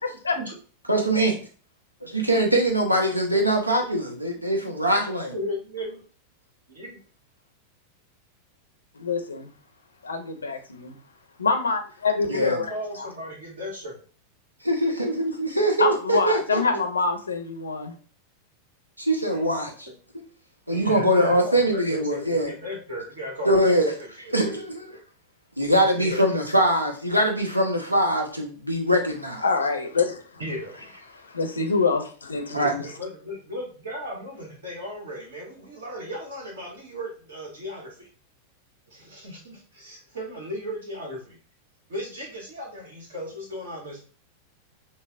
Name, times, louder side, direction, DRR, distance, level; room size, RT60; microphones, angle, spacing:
voice 1, 0.9-1.4 2.1-5.3 12.3-12.6 14.6-16.6 19.0-19.9 20.7-22.5 23.4-23.9 24.3-25.0 25.6-29.4 32.5-32.7, right 1 dB, 85° right, 0.7 m, -22 dB
voice 2, 5.3-6.0 6.7-7.0 12.3-14.0 19.3-19.4 20.7-24.6 25.7-26.3 30.4-30.9 32.5-38.1 38.9-41.4 41.9-44.0, equal, 60° right, 1.3 m, -36 dB
voice 3, 8.9-9.5 10.0-11.0 11.4-12.7 13.0-13.1 15.8-17.9 29.4-30.4 31.2-32.9, left 4 dB, 75° left, 0.5 m, -25 dB
5.4 x 2.0 x 2.4 m
figure-of-eight pair, 90°, 0 cm